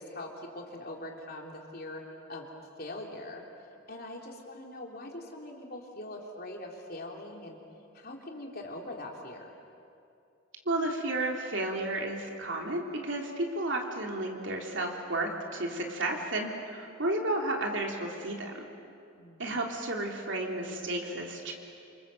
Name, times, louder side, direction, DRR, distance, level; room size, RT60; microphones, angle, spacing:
voice 1, 0.0-2.0 2.3-2.5 2.8-3.4 3.9-7.6 7.9-9.5 19.1-19.5, left 1 dB, 45° left, 0 dB, 3.4 m, -42 dB
voice 2, 10.6-18.6 19.4-21.5, right 2 dB, 65° right, 1 dB, 3.3 m, -32 dB
27.5 x 26.5 x 7.8 m, 2.5 s
head